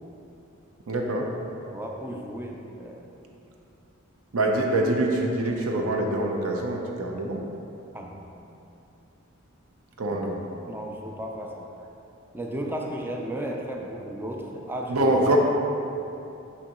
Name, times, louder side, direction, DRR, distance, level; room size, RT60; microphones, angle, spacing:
voice 1, 0.9-1.3 4.3-7.4 10.0-10.3 14.9-15.4, right 2 dB, 90° right, 1 dB, 0.7 m, -24 dB
voice 2, 1.7-3.0 7.9-8.2 10.1-10.3 10.7-11.7 12.3-15.2, right 1 dB, 10° right, 0 dB, 0.4 m, -34 dB
6.1 x 6.1 x 3.0 m, 2.7 s
head